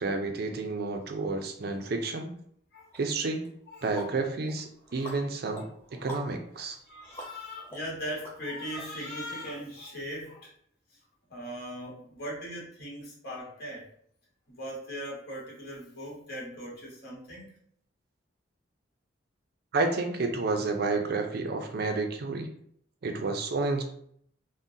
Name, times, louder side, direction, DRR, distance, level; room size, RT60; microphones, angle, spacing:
voice 1, 0.0-2.3 2.9-3.4 3.8-5.6 5.9-6.8 19.7-22.5 23.0-23.8, right 3 dB, 50° right, 5 dB, 0.4 m, -30 dB
sound 1, 2.9-3.0 3.4-8.8, right 1 dB, 10° left, 0.6 m, -47 dB
voice 2, 3.7-4.0 4.9-5.0 5.6-5.7 6.9-10.5 10.9-11.0 11.3-13.9 14.5-17.5, equal, 55° left, -5 dB, 1.2 m, -39 dB
3.7 x 2.1 x 2.6 m, 0.65 s
head